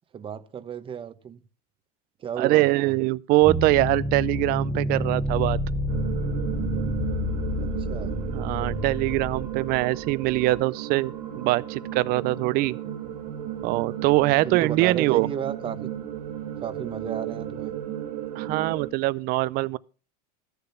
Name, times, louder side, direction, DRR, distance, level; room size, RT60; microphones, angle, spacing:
voice 1, 0.1-1.4 2.2-3.0 7.6-8.2 14.4-15.9 16.6-17.7, right 8 dB, 25° right, 0.9 m, -34 dB
voice 2, 2.4-5.6 8.3-12.8 13.6-15.3 18.4-19.8, right 19 dB, 50° right, 0.5 m, -23 dB
sound 1, 3.4-10.6, left 1 dB, 5° right, 1.0 m, -29 dB
sound 2, 5.9-18.9, right 10 dB, 85° right, 3.1 m, -35 dB
13.0 x 6.9 x 5.7 m
supercardioid pair, 130°, 20 cm